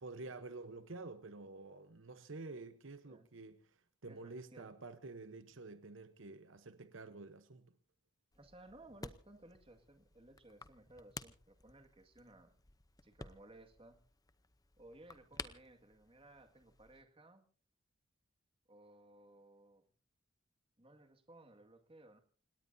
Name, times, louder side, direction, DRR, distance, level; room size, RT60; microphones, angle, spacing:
voice 1, 0.0-7.7, right 3 dB, 75° right, 1.0 m, -50 dB
voice 2, 4.1-4.7 8.3-12.6 13.0-14.0 14.8-17.5 18.7-19.8 20.8-22.2, right 1 dB, 30° right, 2.0 m, -59 dB
sound 1, 8.3-17.0, left 3 dB, 20° left, 0.7 m, -54 dB
29.5 x 17.5 x 2.7 m
head